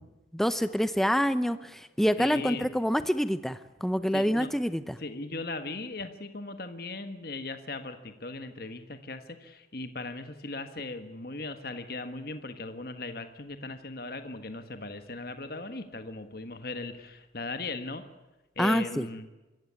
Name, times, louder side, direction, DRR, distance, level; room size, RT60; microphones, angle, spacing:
voice 1, 0.3-5.0 18.6-19.1, equal, ahead, 12 dB, 0.7 m, -27 dB
voice 2, 2.2-2.7 4.1-4.5 5.0-18.0 18.6-19.3, left 3 dB, 55° left, 8 dB, 1.4 m, -38 dB
25.0 x 15.0 x 9.5 m, 1.1 s
head